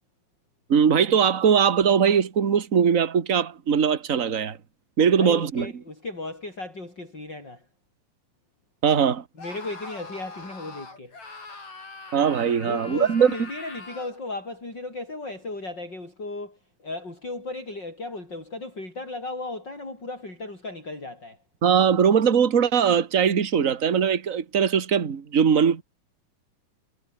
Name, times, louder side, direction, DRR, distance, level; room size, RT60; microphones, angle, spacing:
voice 1, 0.7-4.6 5.0-5.7 8.8-9.2 12.1-13.3 21.6-25.8, right 7 dB, 30° right, 1.6 m, -20 dB
voice 2, 5.2-7.7 9.4-11.2 12.6-21.4, left 2 dB, 30° left, 8.7 m, -35 dB
Screaming, 9.4-14.2, left 3 dB, 60° left, 8.7 m, -42 dB
omnidirectional pair, 3.6 m